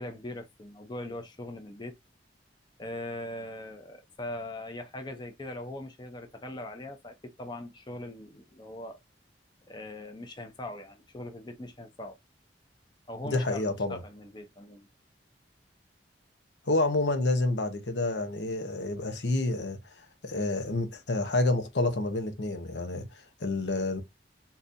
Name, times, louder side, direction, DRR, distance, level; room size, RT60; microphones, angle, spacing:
voice 1, 0.0-1.9 2.8-9.0 9.7-12.2 13.1-13.6 13.9-14.9, left 1 dB, 25° left, 0.6 m, -41 dB
voice 2, 13.2-14.0 16.7-19.8 20.2-24.0, left 2 dB, 75° left, 0.8 m, -29 dB
3.8 x 2.7 x 2.5 m
head